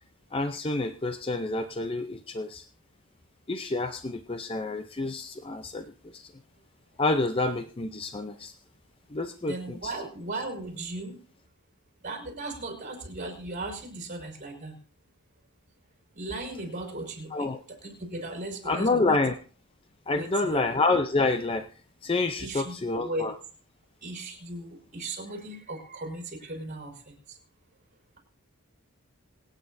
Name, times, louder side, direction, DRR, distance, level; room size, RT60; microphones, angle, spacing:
voice 1, 0.3-2.6 3.5-6.3 7.0-8.5 9.1-9.5 9.8-9.9 17.3-17.6 18.7-19.4 20.1-21.6 22.0-23.3, left 3 dB, 25° left, 8 dB, 0.5 m, -28 dB
voice 2, 9.4-11.1 12.0-14.7 16.1-19.2 20.1-20.7 22.4-23.3 24.0-27.4, right 2 dB, 35° right, 0 dB, 4.9 m, -37 dB
26.5 x 9.0 x 2.7 m, 0.43 s
head